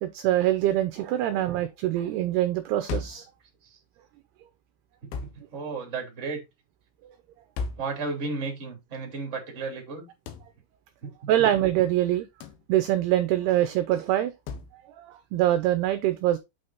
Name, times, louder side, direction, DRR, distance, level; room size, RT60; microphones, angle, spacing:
voice 1, 0.0-3.3 11.3-12.3 12.7-14.3 15.0-16.4, right 13 dB, 80° right, 2.4 m, -24 dB
sound 1, 2.9-3.3 5.1-5.4 7.6-7.9 10.3-10.5 12.4-12.7 14.5-14.7, left 4 dB, 70° left, 2.6 m, -34 dB
voice 2, 5.0-6.4 7.8-10.1 11.0-11.1 11.4-11.5, right 4 dB, 20° right, 2.1 m, -34 dB
8.7 x 5.0 x 4.1 m
omnidirectional pair, 5.4 m